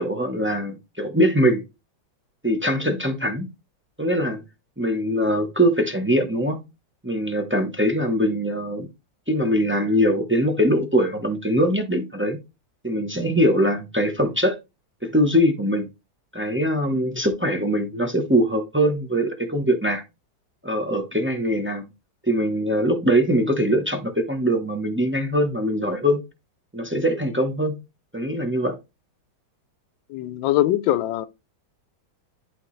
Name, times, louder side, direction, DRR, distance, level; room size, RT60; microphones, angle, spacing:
voice 1, 0.0-1.6 2.4-3.5 4.0-4.4 4.8-6.6 7.0-8.9 9.3-12.4 12.8-14.6 15.0-15.9 16.3-20.0 20.6-21.9 22.3-26.2 26.7-27.8 28.1-28.8, equal, 15° right, 0.4 m, -22 dB
voice 2, 30.1-31.3, left 14 dB, 80° left, 1.3 m, -22 dB
11.0 x 3.8 x 3.2 m
omnidirectional pair, 2.0 m